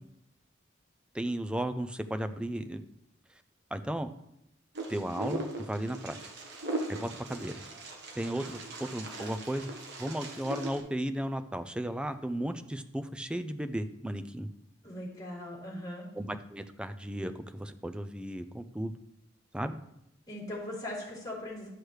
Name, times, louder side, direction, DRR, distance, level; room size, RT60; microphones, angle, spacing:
voice 1, 1.1-2.8 3.7-4.1 4.9-6.2 6.9-7.6 8.2-9.7 10.0-14.5 16.2-18.9 19.5-19.8, right 1 dB, 5° right, 9 dB, 0.4 m, -35 dB
Wind, 4.7-10.8, right 2 dB, 60° right, 1.2 m, -39 dB
voice 2, 14.8-16.1 20.3-21.7, left 1 dB, 20° left, -6 dB, 3.2 m, -39 dB
11.5 x 6.3 x 3.2 m, 0.82 s
head